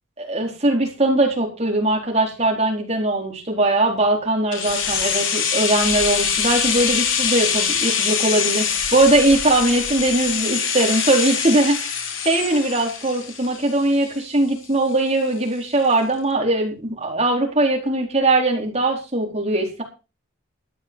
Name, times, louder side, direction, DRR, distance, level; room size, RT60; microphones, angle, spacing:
voice 1, 0.2-8.6 8.9-11.9 12.2-19.8, right 2 dB, 30° right, 1 dB, 4.4 m, -20 dB
sound 1, 4.5-14.3 14.6-14.7, left 7 dB, 65° left, 3.2 m, -24 dB
13.0 x 9.7 x 5.4 m, 0.31 s
head